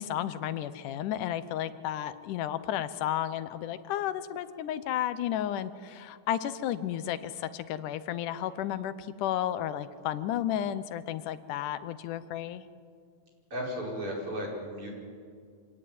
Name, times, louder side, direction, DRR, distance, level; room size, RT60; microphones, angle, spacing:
voice 1, 0.0-12.7, left 11 dB, 85° left, 13 dB, 2.4 m, -33 dB
voice 2, 13.5-14.9, equal, 45° right, -2 dB, 6.1 m, -35 dB
26.0 x 17.5 x 9.4 m, 2.2 s
omnidirectional pair, 3.5 m